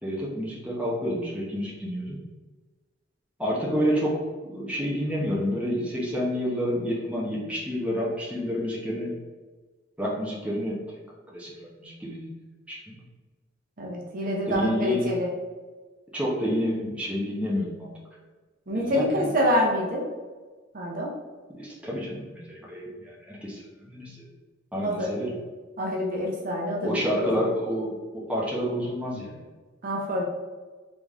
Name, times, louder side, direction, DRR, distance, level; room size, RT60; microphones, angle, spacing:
voice 1, 0.0-2.2 3.4-9.1 10.0-10.8 11.3-12.3 12.7-13.0 14.2-15.1 16.1-17.9 18.7-19.3 21.5-24.3 24.7-25.4 26.8-29.4, equal, 5° right, -5 dB, 0.9 m, -29 dB
voice 2, 13.8-15.3 18.7-20.0 20.7-21.1 24.8-25.1 25.8-27.3 29.8-30.2, left 1 dB, 45° right, -2 dB, 0.9 m, -26 dB
3.9 x 3.6 x 3.6 m, 1.3 s
head